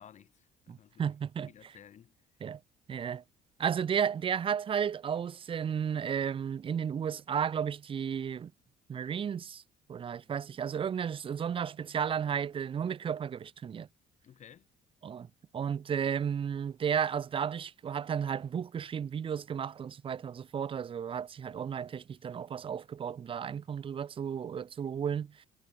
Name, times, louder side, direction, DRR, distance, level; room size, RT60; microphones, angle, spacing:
voice 1, 0.0-1.1 1.5-2.1 14.2-14.7, left 9 dB, 45° left, 1.4 m, -55 dB
voice 2, 0.7-1.7 2.4-2.6 2.9-3.2 3.6-8.5 8.9-9.6 9.9-13.9 15.0-15.3 15.5-25.5, right 8 dB, 30° right, 0.5 m, -33 dB
cardioid pair, 110°, 17 cm